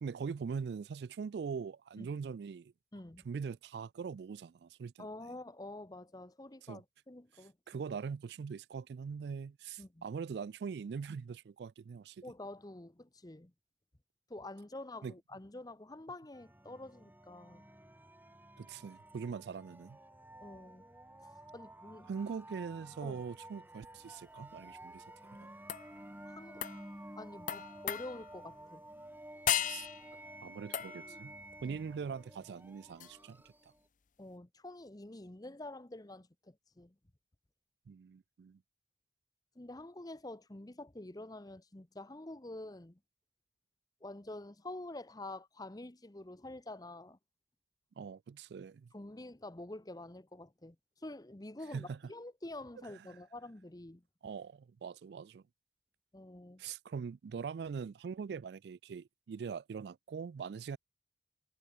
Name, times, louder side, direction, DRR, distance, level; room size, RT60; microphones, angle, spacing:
voice 1, 0.0-2.7 3.2-5.1 6.6-6.8 7.7-12.2 15.0-15.1 18.6-20.0 22.1-25.0 25.4-25.5 29.6-29.9 30.4-31.3 31.6-33.4 37.9-38.6 48.0-48.9 51.7-52.0 54.2-55.4 56.6-60.8, right 6 dB, 65° right, 0.3 m, -42 dB
voice 2, 2.9-3.3 5.0-7.8 9.8-10.0 12.2-13.5 14.3-17.6 20.4-20.8 21.2-22.1 23.0-23.2 26.2-26.6 27.2-28.8 31.6-31.8 34.2-36.9 39.6-43.0 44.0-47.2 48.9-50.8 51.0-54.0 56.1-56.6, left 2 dB, 20° left, 0.9 m, -47 dB
sound 1, 16.3-33.8, right 1 dB, 10° right, 3.8 m, -53 dB
sound 2, 25.7-26.0 26.6-26.9 27.5-28.4 29.5-30.1 30.7-31.2 33.0-33.1, left 10 dB, 45° left, 0.7 m, -36 dB
head